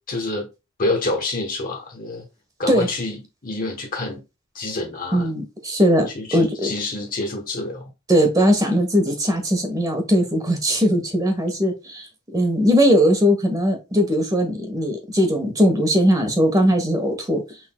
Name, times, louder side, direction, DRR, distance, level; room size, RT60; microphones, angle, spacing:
voice 1, 0.1-0.5 0.8-2.3 2.6-3.2 3.4-4.2 4.5-5.3 6.1-7.9, left 2 dB, 40° left, 1.1 m, -27 dB
voice 2, 5.1-6.7 8.1-17.4, equal, 15° right, 1.2 m, -19 dB
6.1 x 3.7 x 2.2 m
head